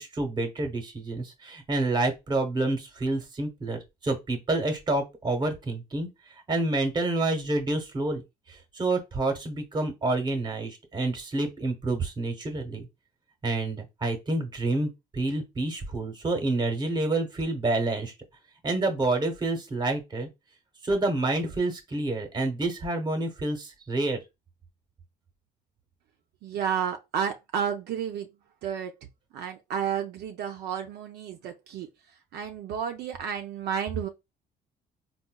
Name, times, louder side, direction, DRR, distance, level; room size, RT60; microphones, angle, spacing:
voice 1, 0.0-6.1 6.5-8.2 8.5-12.9 13.4-18.1 18.6-20.3 20.8-24.2, right 2 dB, 25° right, 0.9 m, -28 dB
voice 2, 26.4-28.3 28.6-28.9 29.3-31.9 32.3-34.1, right 8 dB, 75° right, 0.5 m, -31 dB
3.9 x 2.2 x 2.2 m
cardioid pair, 110°, 17 cm